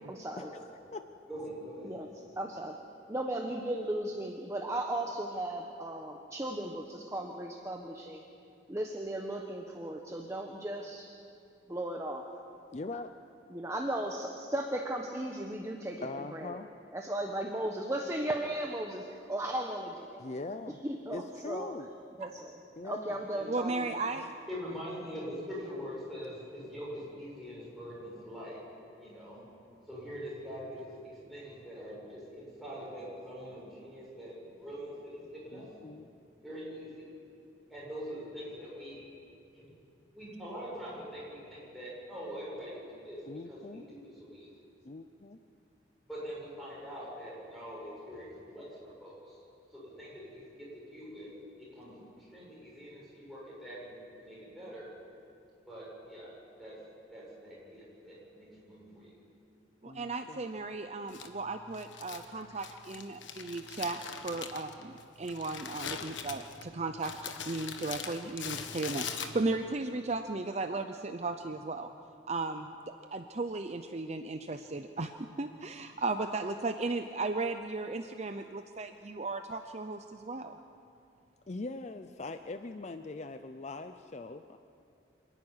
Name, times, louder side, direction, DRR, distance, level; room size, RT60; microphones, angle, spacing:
voice 1, 0.1-0.5 1.8-2.1 2.4-2.8 3.1-8.2 8.7-11.1 11.7-12.3 13.5-16.6 16.9-20.3 20.7-21.7 22.2-22.6 22.8-24.0, right 1 dB, 15° right, 1 dB, 1.1 m, -36 dB
voice 2, 1.3-1.9 23.3-23.4 23.7-23.8 24.5-28.6 29.0-29.5 29.9-35.8 36.4-37.2 37.7-39.1 39.5-39.7 40.1-44.5 46.1-49.4 49.7-51.3 51.6-54.9 55.7-56.3 56.6-56.7 57.1-59.1, equal, ahead, -7 dB, 7.4 m, -44 dB
voice 3, 12.7-13.1 16.0-16.7 20.2-20.8 21.1-21.9 22.8-23.2 35.5-36.1 43.3-43.8 44.8-45.4 59.8-60.4 62.3-62.6 81.5-84.6, left 3 dB, 40° left, 9 dB, 0.5 m, -41 dB
voice 4, 23.5-24.3 59.8-67.1 67.4-71.9 72.3-72.7 73.1-75.1 75.4-80.6, right 3 dB, 35° right, 7 dB, 0.6 m, -35 dB
Crumpling crinkling, 61.1-69.7, left 7 dB, 85° left, 1.4 m, -42 dB
26.5 x 11.0 x 9.7 m, 2.5 s
head